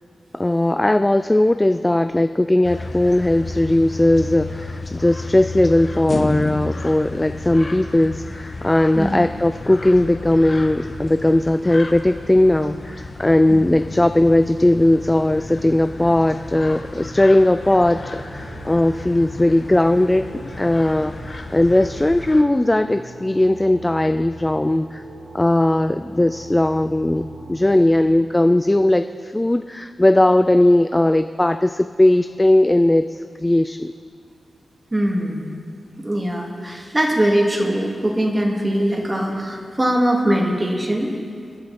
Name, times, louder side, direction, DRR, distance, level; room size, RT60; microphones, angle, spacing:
voice 1, 0.3-20.2 20.6-25.0 25.3-33.9, left 1 dB, 15° left, 9 dB, 0.4 m, -18 dB
sound 1, 2.6-22.4, left 2 dB, 40° left, 1.4 m, -32 dB
sound 2, 17.8-27.9, right 3 dB, 70° right, 3.9 m, -41 dB
voice 2, 34.9-35.5 36.0-41.1, right 1 dB, 20° right, -1 dB, 2.6 m, -21 dB
28.0 x 11.5 x 4.3 m, 2.2 s
wide cardioid pair, 110°, 0 cm